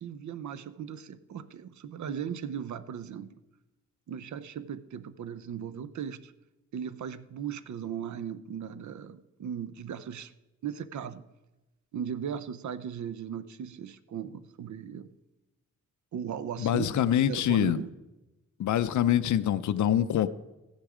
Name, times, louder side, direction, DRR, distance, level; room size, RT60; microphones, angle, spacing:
voice 1, 0.0-3.3 4.1-6.3 6.7-10.3 10.6-11.2 11.9-15.1 16.1-17.0 17.3-17.9, right 8 dB, 65° right, 14 dB, 0.7 m, -37 dB
voice 2, 16.6-17.8 18.6-20.3, left 10 dB, 70° left, 10 dB, 0.6 m, -25 dB
14.5 x 10.5 x 4.9 m, 1.0 s
wide cardioid pair, 115°, 31 cm